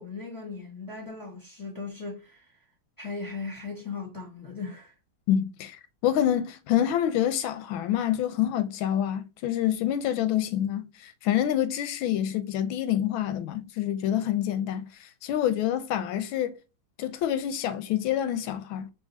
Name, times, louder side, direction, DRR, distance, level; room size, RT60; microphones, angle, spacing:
voice 1, 0.0-2.5 3.0-4.9, left 4 dB, 15° left, 0.7 m, -38 dB
voice 2, 5.3-5.8 6.0-14.9 15.2-16.5 17.0-18.9, left 11 dB, 90° left, 1.4 m, -27 dB
4.9 x 2.6 x 2.6 m
omnidirectional pair, 2.1 m